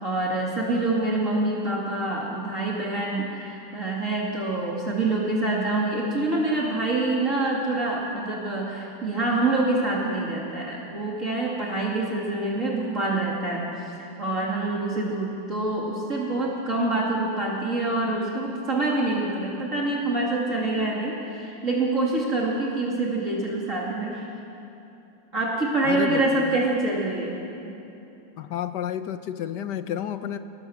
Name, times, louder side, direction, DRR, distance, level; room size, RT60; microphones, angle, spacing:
voice 1, 0.0-24.2 25.3-27.4 27.6-27.7, right 2 dB, 40° right, -4 dB, 2.9 m, -26 dB
voice 2, 25.8-26.6 28.4-30.4, left 9 dB, 65° left, 10 dB, 1.5 m, -31 dB
24.0 x 20.5 x 7.2 m, 2.8 s
omnidirectional pair, 2.0 m